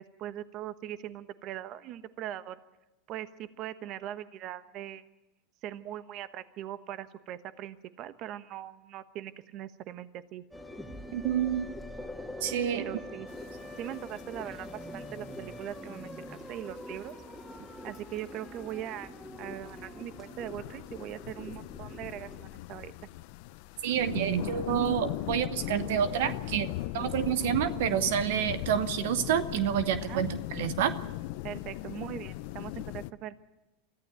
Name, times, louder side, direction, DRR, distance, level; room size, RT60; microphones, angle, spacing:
voice 1, 0.2-2.6 3.1-5.0 5.6-10.4 12.7-13.3 13.8-17.1 17.8-22.9 30.0-30.2 31.4-33.3, right 12 dB, 50° right, 13 dB, 1.1 m, -41 dB
sound 1, 10.5-22.4, left 1 dB, ahead, 2.6 m, -44 dB
voice 2, 11.1-11.7 12.4-12.9 23.8-30.9, right 10 dB, 70° right, 12 dB, 1.0 m, -28 dB
sound 2, 13.3-33.1, left 18 dB, 65° left, 0.7 m, -40 dB
24.0 x 14.5 x 9.2 m, 1.0 s
hypercardioid pair, 100°, 0 cm